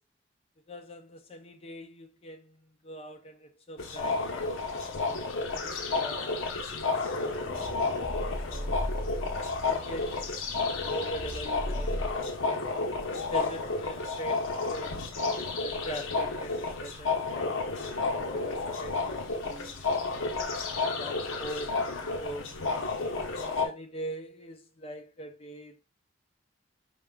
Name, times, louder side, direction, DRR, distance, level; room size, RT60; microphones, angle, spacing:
voice 1, 0.7-4.6 5.0-5.4 6.0-7.6 8.4-9.0 9.7-12.7 13.3-15.0 15.6-19.8 20.6-21.8 22.2-22.6 23.2-25.8, right 1 dB, 30° left, 0.4 m, -42 dB
sound 1, 3.8-23.7, left 3 dB, 85° left, 0.8 m, -31 dB
sound 2, 7.2-12.1, equal, 5° right, 1.1 m, -37 dB
4.7 x 3.7 x 2.2 m
head